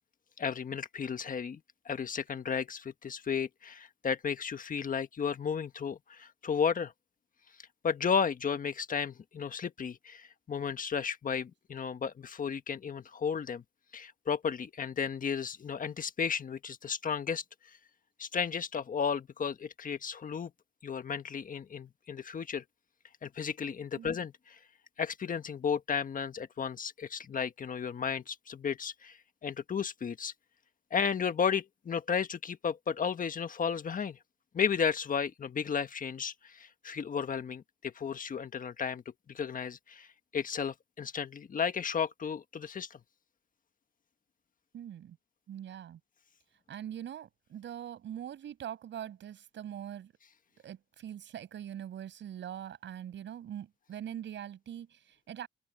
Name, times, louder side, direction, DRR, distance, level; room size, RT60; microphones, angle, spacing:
voice 1, 0.4-1.6 1.8-6.9 7.8-13.6 13.9-17.4 18.2-20.5 20.8-22.6 23.2-24.6 25.0-30.3 30.9-34.2 34.5-40.1 40.3-43.0, left 6 dB, 45° left, 1.5 m, -33 dB
voice 2, 44.7-45.2 45.5-46.0 46.7-50.1 50.6-55.5, right 10 dB, 70° right, 6.4 m, -42 dB
open air
cardioid pair, 90°, 20 cm